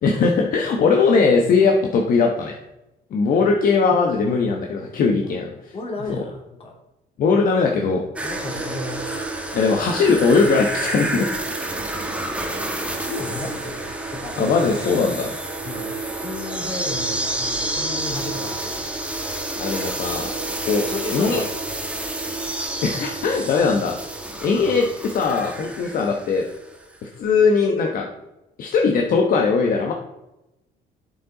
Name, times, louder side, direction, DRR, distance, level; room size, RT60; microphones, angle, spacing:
voice 1, 0.0-2.5 3.1-5.5 6.1-6.2 7.2-8.0 9.5-11.3 14.4-15.3 19.6-20.3 20.6-20.8 21.1-21.4 22.8-23.9 24.4-26.5 27.2-28.1 28.6-29.9, left 4 dB, 55° left, 2 dB, 1.1 m, -19 dB
voice 2, 5.7-6.7 8.2-9.2 12.8-14.9 15.6-20.0 20.9-21.5 24.6-24.8, left 2 dB, 35° left, -1 dB, 2.9 m, -34 dB
sound 1, 8.2-26.7 26.9-27.0, right 2 dB, 5° right, 1.3 m, -29 dB
7.8 x 7.1 x 3.9 m, 0.91 s
cardioid pair, 110°, 17 cm